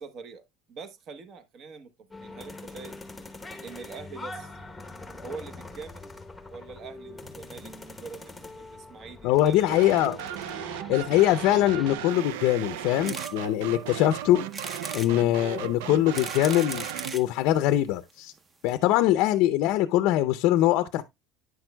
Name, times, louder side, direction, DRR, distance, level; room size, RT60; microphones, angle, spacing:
voice 1, 0.0-3.0 3.6-4.5 5.2-6.1 6.5-9.8, right 5 dB, 40° right, 0.9 m, -44 dB
sound 1, 2.1-11.9, left 2 dB, 5° left, 0.9 m, -43 dB
voice 2, 9.2-10.2 10.9-14.5 14.9-16.9 17.1-18.3 18.6-21.0, left 14 dB, 60° left, 0.5 m, -23 dB
sound 2, 9.7-17.2, right 10 dB, 90° right, 0.4 m, -36 dB
sound 3, 13.0-13.3 13.8-13.9 14.5-15.1 15.9-17.3 18.1-18.2 18.4-18.5 18.7-18.8, right 3 dB, 20° right, 0.7 m, -38 dB
9.4 x 6.1 x 2.2 m
cardioid pair, 145°, 0 cm